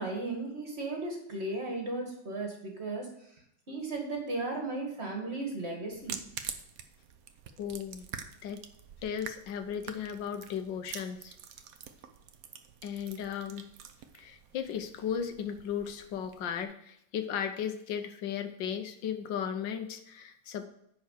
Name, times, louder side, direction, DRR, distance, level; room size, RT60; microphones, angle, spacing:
voice 1, 0.0-3.1 3.7-6.2, right 2 dB, 35° right, 1 dB, 2.3 m, -35 dB
sound 1, 5.9-16.6, right 7 dB, 60° right, 1.0 m, -46 dB
voice 2, 7.6-8.1 8.4-8.6 9.0-11.4 12.8-13.7 14.1-20.7, left 8 dB, 75° left, 8 dB, 1.6 m, -36 dB
10.0 x 4.7 x 6.6 m, 0.73 s
omnidirectional pair, 2.0 m